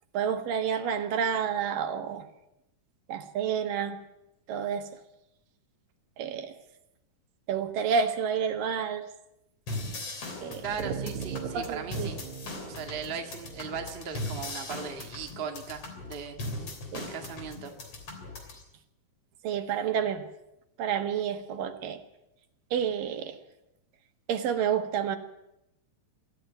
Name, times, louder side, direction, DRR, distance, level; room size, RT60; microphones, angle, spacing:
voice 1, 0.1-2.3 3.1-4.0 4.5-4.9 6.2-6.6 7.5-9.1 10.4-10.7 11.5-12.1 16.9-17.1 19.4-20.3 20.8-22.0 22.7-23.4 24.3-25.2, right 7 dB, 80° right, 7 dB, 3.2 m, -29 dB
sound 1, 9.7-18.6, left 2 dB, 45° left, 4.2 m, -39 dB
voice 2, 10.6-12.2 12.6-16.4 16.9-17.7, right 6 dB, 25° right, 4 dB, 1.3 m, -38 dB
sound 2, 10.8-14.4, right 7 dB, 60° right, 2.5 m, -39 dB
23.5 x 15.0 x 9.2 m, 0.87 s
omnidirectional pair, 3.9 m